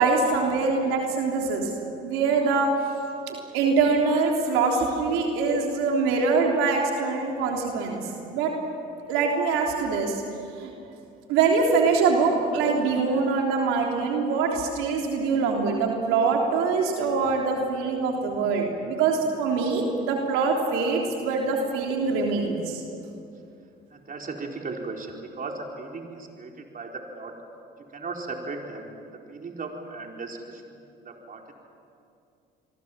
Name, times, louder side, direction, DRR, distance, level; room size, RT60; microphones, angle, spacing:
voice 1, 0.0-1.7 2.0-2.7 3.3-8.5 9.1-10.2 10.6-10.7 11.3-22.8, right 4 dB, 80° right, 0 dB, 3.5 m, -24 dB
voice 2, 23.9-27.4 27.9-28.9 29.3-31.5, right 3 dB, 40° right, 1 dB, 4.5 m, -37 dB
28.0 x 22.5 x 7.5 m, 2.6 s
supercardioid pair, 70°, 21 cm